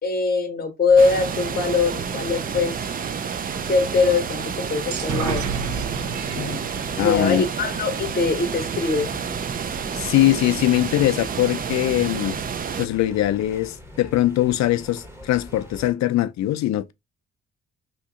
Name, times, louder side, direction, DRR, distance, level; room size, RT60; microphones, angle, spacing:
voice 1, 0.0-2.9 3.7-5.5 6.3-6.6 7.0-9.1, left 4 dB, 30° left, 0.7 m, -22 dB
sound 1, 0.9-15.9, equal, 10° right, 0.9 m, -43 dB
sound 2, 1.0-12.9, right 7 dB, 30° right, 0.4 m, -30 dB
sound 3, 4.9-8.6, right 5 dB, 70° right, 0.9 m, -31 dB
voice 2, 7.0-7.5 9.9-12.4 12.8-16.9, left 14 dB, 65° left, 0.5 m, -21 dB
2.9 x 2.6 x 3.7 m
cardioid pair, 90°, 30 cm